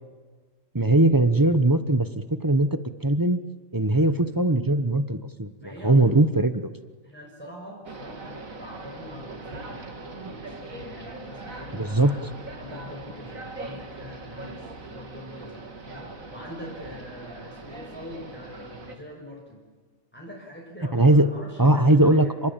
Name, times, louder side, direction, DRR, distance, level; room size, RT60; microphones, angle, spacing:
voice 1, 0.7-2.1 2.4-3.4 3.7-5.5 5.8-6.7 11.8-12.2 20.9-21.3 21.6-22.3, right 2 dB, 15° right, 12 dB, 0.9 m, -20 dB
voice 2, 5.6-6.2 7.0-12.2 12.6-14.6 14.9-19.6 20.1-22.4, left 1 dB, 10° left, -3 dB, 6.2 m, -43 dB
sound 1, 7.8-18.9, right 3 dB, 85° right, 2.9 m, -41 dB
29.5 x 21.5 x 9.0 m, 1.4 s
omnidirectional pair, 1.4 m